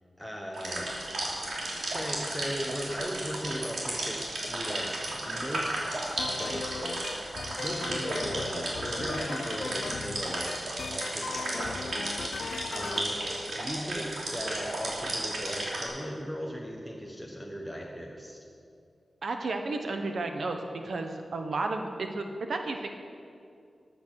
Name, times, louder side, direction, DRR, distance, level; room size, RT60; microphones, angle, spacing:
voice 1, 0.2-0.9 1.8-6.0 6.3-6.8 7.6-10.6 10.9-18.4, equal, 5° right, 0 dB, 1.1 m, -38 dB
sound 1, 0.5-15.8, right 1 dB, 85° right, 3.0 m, -34 dB
sound 2, 6.2-13.1, left 5 dB, 90° left, 0.4 m, -39 dB
voice 2, 19.2-22.9, right 3 dB, 65° right, 5 dB, 1.1 m, -32 dB
14.5 x 8.5 x 6.5 m, 2.4 s
wide cardioid pair, 145°, 0 cm